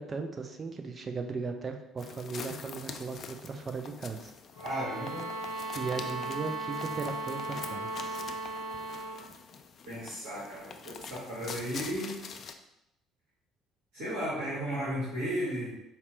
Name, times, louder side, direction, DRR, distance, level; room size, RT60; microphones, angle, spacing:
voice 1, 0.0-4.3 5.7-8.2, right 4 dB, 35° right, 5 dB, 0.5 m, -37 dB
sound 1, 2.0-12.5, left 5 dB, 45° left, 0.3 m, -45 dB
sound 2, 4.5-9.3, right 2 dB, 85° right, 0.9 m, -37 dB
voice 2, 4.6-5.3 9.8-12.1 13.9-15.7, equal, 60° right, -8 dB, 1.3 m, -34 dB
4.2 x 2.0 x 4.3 m, 0.84 s
figure-of-eight pair, 50°, 0 cm